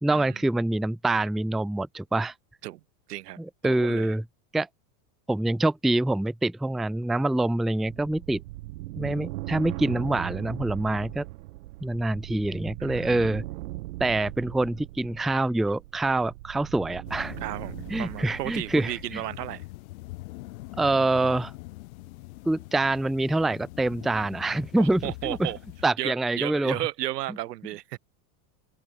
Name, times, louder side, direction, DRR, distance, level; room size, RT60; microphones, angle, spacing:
voice 1, 0.0-2.3 3.4-4.2 4.5-4.7 5.3-8.4 9.0-11.2 11.8-13.4 14.0-17.3 17.9-19.2 20.8-21.5 22.5-25.5 25.8-26.8, right 2 dB, ahead, 0.6 m, -25 dB
voice 2, 3.6-4.1 9.0-9.2 12.8-13.4 17.4-19.6 24.8-25.6 26.0-28.0, right 15 dB, 85° right, 3.9 m, -34 dB
sound 1, 7.9-19.1, right 18 dB, 65° right, 3.3 m, -39 dB
sound 2, 17.1-25.8, left 20 dB, 60° left, 7.6 m, -43 dB
supercardioid pair, 165°, 46 cm